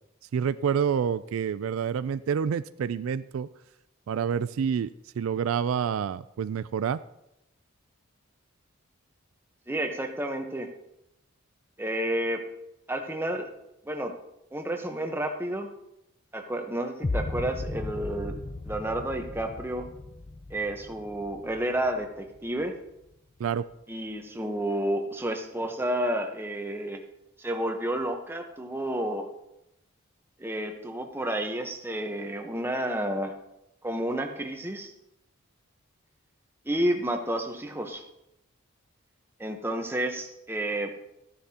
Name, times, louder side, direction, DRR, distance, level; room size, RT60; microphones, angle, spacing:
voice 1, 0.3-3.5 4.1-7.0 23.4-23.7, right 7 dB, 75° right, 15 dB, 0.3 m, -28 dB
voice 2, 9.7-10.7 11.8-12.4 12.9-13.5 13.8-14.1 14.5-15.7 16.3-18.4 18.7-19.9 20.5-22.7 23.9-27.0 27.4-29.3 30.4-33.4 33.8-34.9 36.6-38.0 39.4-40.9, right 1 dB, 10° right, 4 dB, 0.9 m, -30 dB
sound 1, 17.0-23.0, left 2 dB, 25° left, 0.4 m, -36 dB
14.5 x 10.0 x 2.9 m, 0.86 s
head